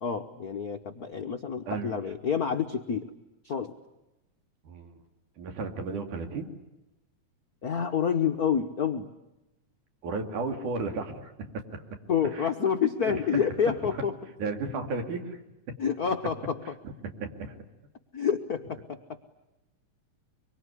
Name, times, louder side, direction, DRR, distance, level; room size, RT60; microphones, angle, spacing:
voice 1, 0.0-3.1 3.4-3.7 7.6-9.1 12.1-14.1 15.8-16.7 18.1-19.2, left 7 dB, 80° left, 5 dB, 0.8 m, -28 dB
voice 2, 1.7-2.0 4.6-4.9 5.4-6.5 10.0-11.5 12.3-12.5 13.0-13.1 14.4-15.4 16.8-16.9 17.2-17.5, right 4 dB, 85° right, 5 dB, 4.0 m, -34 dB
25.5 x 24.0 x 9.9 m, 0.97 s
omnidirectional pair, 3.5 m